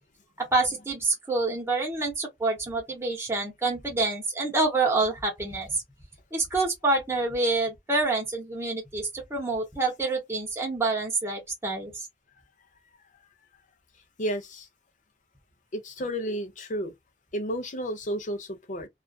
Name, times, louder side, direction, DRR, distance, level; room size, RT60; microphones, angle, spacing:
voice 1, 0.4-5.8 6.3-12.1, right 3 dB, 15° right, 0.7 m, -27 dB
voice 2, 14.2-14.7 15.7-16.9 17.3-18.9, equal, 45° left, 0.6 m, -32 dB
2.4 x 2.3 x 2.2 m
head